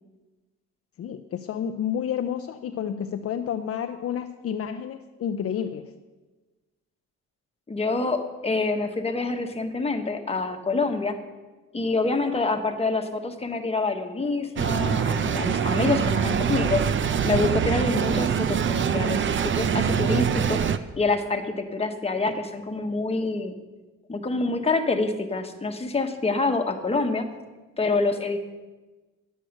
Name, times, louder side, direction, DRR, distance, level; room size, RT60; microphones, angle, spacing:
voice 1, 1.0-5.9, left 8 dB, 50° left, 6 dB, 0.6 m, -30 dB
voice 2, 7.7-11.2 11.7-16.8 17.2-20.6 21.0-23.5 24.1-27.3 27.8-28.4, left 3 dB, 20° left, 5 dB, 1.2 m, -26 dB
sound 1, 14.6-20.8, right 7 dB, 40° right, 0.6 m, -24 dB
10.0 x 7.8 x 6.4 m, 1.2 s
cardioid pair, 90°, 30 cm